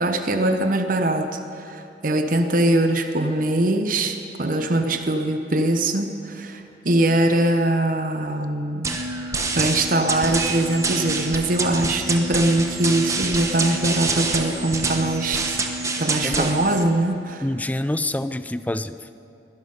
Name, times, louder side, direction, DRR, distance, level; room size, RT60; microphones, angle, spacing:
voice 1, 0.0-9.0 9.5-15.6 16.0-17.4, right 1 dB, 50° right, 7 dB, 0.9 m, -22 dB
sound 1, 8.8-16.8, right 3 dB, 20° right, 1.1 m, -26 dB
voice 2, 17.4-19.1, left 1 dB, 10° left, 12 dB, 0.4 m, -26 dB
21.0 x 12.0 x 5.5 m, 2.7 s
head